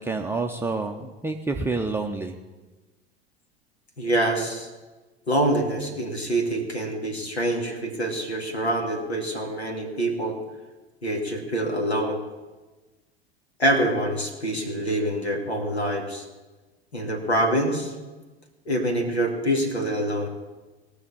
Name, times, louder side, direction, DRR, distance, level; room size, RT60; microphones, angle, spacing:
voice 1, 0.0-2.4, right 3 dB, 5° right, 3 dB, 0.6 m, -28 dB
voice 2, 4.0-4.7 5.3-10.4 11.0-12.2 13.6-16.2 16.9-17.9 18.7-20.3, right 1 dB, 80° left, 2 dB, 2.3 m, -25 dB
19.0 x 6.4 x 7.0 m, 1.2 s
figure-of-eight pair, 80°, 32 cm